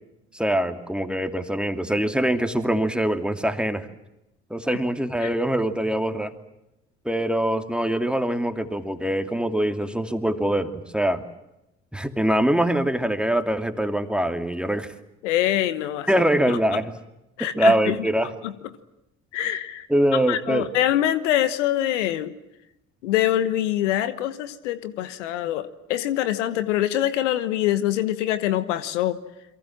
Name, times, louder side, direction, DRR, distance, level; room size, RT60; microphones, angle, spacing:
voice 1, 0.3-3.9 4.5-6.3 7.0-11.2 11.9-14.9 16.1-16.9 17.4-18.3 19.9-20.7, right 1 dB, 5° right, 7 dB, 2.7 m, -23 dB
voice 2, 15.2-16.1 16.5-16.6 17.4-18.0 18.4-18.5 19.3-19.9 20.3-22.3 23.0-29.2, left 12 dB, 80° left, 13 dB, 1.3 m, -24 dB
28.5 x 23.0 x 7.5 m, 0.90 s
hypercardioid pair, 50°, 36 cm